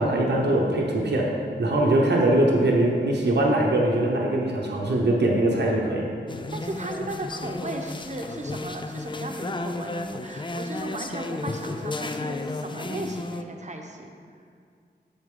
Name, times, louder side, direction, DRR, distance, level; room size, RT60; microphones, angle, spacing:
voice 1, 0.0-1.3 1.6-6.1, right 1 dB, 75° right, -2 dB, 0.9 m, -22 dB
sound 1, 6.3-13.4, left 2 dB, 25° left, 0.4 m, -33 dB
voice 2, 6.5-14.1, right 1 dB, 40° right, 2 dB, 0.9 m, -36 dB
7.8 x 7.0 x 3.8 m, 2.2 s
wide cardioid pair, 80°, 18 cm